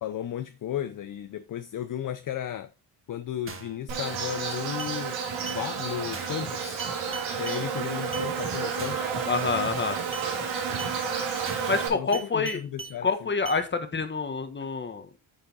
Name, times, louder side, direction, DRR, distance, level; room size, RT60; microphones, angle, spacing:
voice 1, 0.0-2.7 3.1-6.8 7.4-9.0 11.9-13.3, left 10 dB, 45° left, 0.6 m, -34 dB
sound 1, 3.5-3.8 4.1-4.4 4.8-5.0 5.5-5.6 6.1-6.4 6.8-7.6 8.1-8.3 8.8-9.1 9.5-9.8 10.1-10.3 10.8-11.0 11.5-11.8 12.1-13.0 13.5-13.6, right 5 dB, 30° right, 1.4 m, -40 dB
Insect, 3.9-11.9, right 6 dB, 90° right, 3.1 m, -31 dB
voice 2, 9.3-10.0 11.7-12.6 13.0-15.1, left 4 dB, 25° left, 1.3 m, -27 dB
8.9 x 5.1 x 4.0 m
cardioid pair, 115°, 45 cm